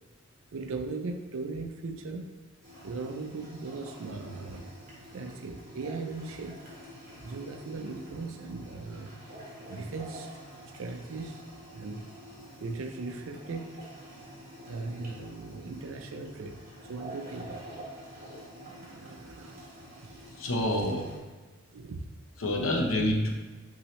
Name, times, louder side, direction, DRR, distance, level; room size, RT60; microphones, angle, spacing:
voice 1, 0.5-2.3 2.8-4.7 5.1-6.6 7.2-9.1 9.7-10.3 10.7-11.4 11.7-12.1 12.6-13.7 14.7-16.6 16.9-17.7 18.7-19.6 20.0-20.1 21.7-22.1, right 3 dB, 70° right, 5 dB, 0.5 m, -38 dB
sound 1, 2.6-21.2, right 1 dB, 40° right, 1.4 m, -48 dB
voice 2, 20.4-21.1 22.4-23.3, left 1 dB, 65° left, 1 dB, 0.7 m, -27 dB
5.6 x 2.7 x 3.1 m, 1.3 s
head